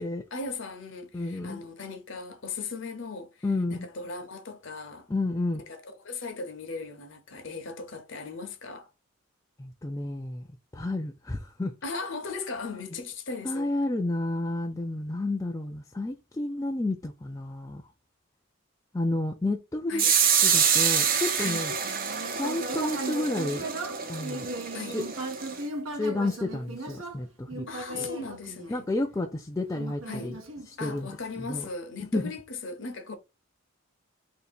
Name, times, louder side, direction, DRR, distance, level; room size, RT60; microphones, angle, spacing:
voice 1, 0.3-3.3 3.7-5.1 5.7-8.9 11.8-13.7 19.9-20.1 21.4-21.6 24.7-25.0 27.7-28.9 30.1-30.3 30.8-33.1, left 4 dB, 60° left, 0.8 m, -37 dB
voice 2, 1.1-1.6 3.4-3.9 5.1-5.6 9.6-10.4 10.7-11.7 12.9-13.0 13.4-17.8 18.9-20.0 20.4-21.7 22.4-23.6 24.1-24.5 24.9-25.1 25.9-27.7 27.9-28.1 28.7-30.4 30.7-31.6 32.1-32.3, left 2 dB, 15° left, 0.3 m, -31 dB
sound 1, 20.0-25.6, right 7 dB, 40° right, 0.5 m, -26 dB
Human voice, 21.8-29.2 29.7-31.2, right 2 dB, 70° right, 0.9 m, -37 dB
2.8 x 2.7 x 4.2 m
head